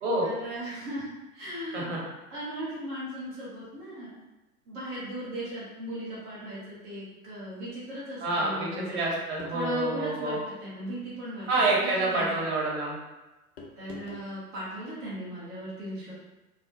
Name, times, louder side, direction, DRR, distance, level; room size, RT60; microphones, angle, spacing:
voice 1, 0.2-1.0 1.4-1.9 2.3-4.1 4.7-9.0 9.5-10.3 10.6-11.5 11.8-12.5 13.8-16.1, right 1 dB, 15° right, -10 dB, 0.4 m, -37 dB
voice 2, 8.2-10.4 11.5-13.0, right 2 dB, 50° right, -3 dB, 0.8 m, -27 dB
sound 1, 9.4-10.0 11.3-11.6 13.6-14.3, left 4 dB, 40° left, 0.5 m, -46 dB
2.3 x 2.0 x 2.6 m, 1.1 s
figure-of-eight pair, 100°, 45 cm